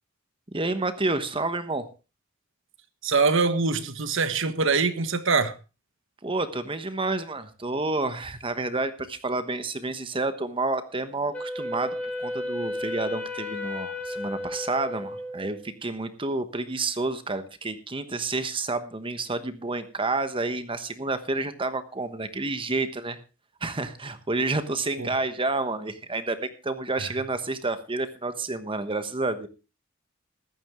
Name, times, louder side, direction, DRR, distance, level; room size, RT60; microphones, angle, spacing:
voice 1, 0.5-1.9 6.2-23.2 23.6-29.5, right 3 dB, 25° right, 11 dB, 1.2 m, -29 dB
voice 2, 3.0-5.6 25.0-25.1, right 4 dB, 65° right, 11 dB, 1.3 m, -23 dB
Wind instrument woodwind instrument, 11.3-15.7, left 1 dB, 5° left, 2.6 m, -33 dB
15.0 x 12.5 x 3.7 m, 0.31 s
head